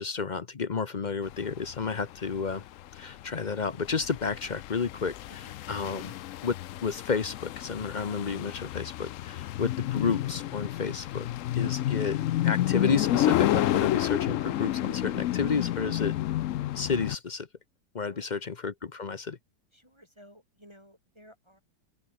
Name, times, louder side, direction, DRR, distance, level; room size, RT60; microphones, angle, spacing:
voice 1, 0.0-2.6 2.9-5.2 5.7-6.1 6.4-11.3 11.5-16.2 16.7-17.5 17.9-19.4, left 5 dB, 40° left, 0.7 m, -31 dB
sound 1, 1.3-17.2, left 14 dB, 75° left, 0.7 m, -30 dB
voice 2, 18.1-18.5 19.7-21.6, equal, 15° right, 7.3 m, -56 dB
open air
omnidirectional pair, 1.9 m